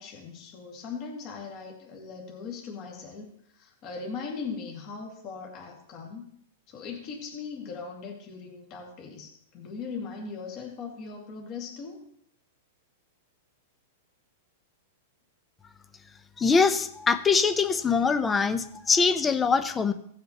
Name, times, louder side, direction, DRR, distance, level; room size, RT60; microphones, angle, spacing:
voice 1, 0.0-6.3 6.7-12.0, left 5 dB, 40° left, 0 dB, 2.0 m, -39 dB
voice 2, 16.4-19.9, left 5 dB, 15° left, 12 dB, 0.6 m, -23 dB
16.5 x 7.4 x 3.0 m, 0.68 s
hypercardioid pair, 145°, 0 cm